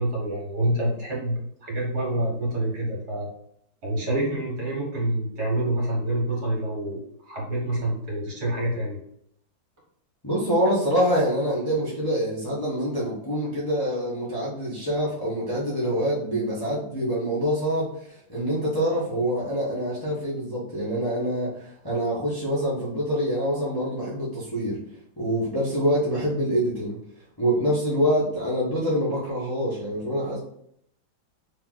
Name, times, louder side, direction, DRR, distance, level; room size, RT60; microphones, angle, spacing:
voice 1, 0.0-3.3 3.8-9.0, right 1 dB, 55° right, -3 dB, 1.8 m, -27 dB
voice 2, 10.2-17.9 18.3-24.8 25.2-27.0 27.4-30.4, equal, 15° left, -7 dB, 0.8 m, -25 dB
3.5 x 3.0 x 3.8 m, 0.71 s
omnidirectional pair, 2.1 m